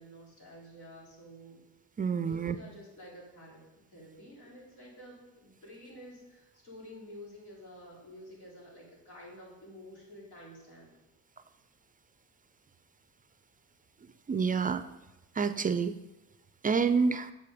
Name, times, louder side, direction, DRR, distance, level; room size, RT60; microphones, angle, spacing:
voice 1, 0.0-1.6 2.2-3.6 3.9-10.9, equal, 80° left, -4 dB, 3.3 m, -50 dB
voice 2, 2.0-2.6 14.3-14.8 15.4-16.0 16.6-17.3, right 5 dB, 30° right, 12 dB, 0.4 m, -28 dB
8.3 x 5.3 x 5.0 m, 0.96 s
cardioid pair, 90°, 30 cm